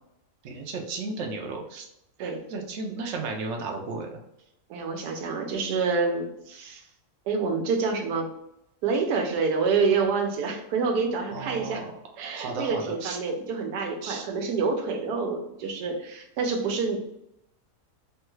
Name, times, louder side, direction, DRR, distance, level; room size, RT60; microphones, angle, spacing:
voice 1, 0.4-1.8 2.2-4.2 11.3-11.9 12.3-13.2 14.0-14.3, right 3 dB, 65° right, 2 dB, 0.8 m, -34 dB
voice 2, 4.7-6.8 7.3-8.3 8.8-11.8 12.2-17.1, right 4 dB, 90° right, 3 dB, 1.2 m, -27 dB
3.1 x 2.3 x 3.0 m, 0.81 s
omnidirectional pair, 1.7 m